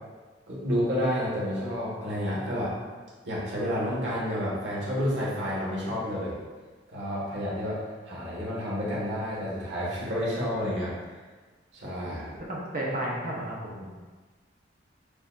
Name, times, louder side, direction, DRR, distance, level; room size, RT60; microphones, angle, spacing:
voice 1, 0.5-2.7 3.2-6.4 6.9-10.9 11.7-12.3, equal, 75° right, -6 dB, 1.4 m, -30 dB
voice 2, 12.4-13.9, right 1 dB, 50° right, -3 dB, 0.9 m, -33 dB
6.6 x 2.7 x 2.4 m, 1.4 s
head